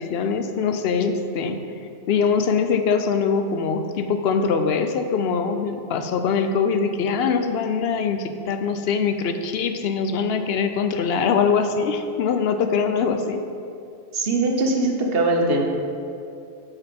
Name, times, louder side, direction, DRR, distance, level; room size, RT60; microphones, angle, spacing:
voice 1, 0.0-1.6 2.1-13.5, left 5 dB, 75° left, 7 dB, 0.8 m, -23 dB
voice 2, 14.1-15.6, right 2 dB, 65° right, 1 dB, 1.1 m, -21 dB
8.8 x 4.7 x 5.2 m, 2.5 s
omnidirectional pair, 1.1 m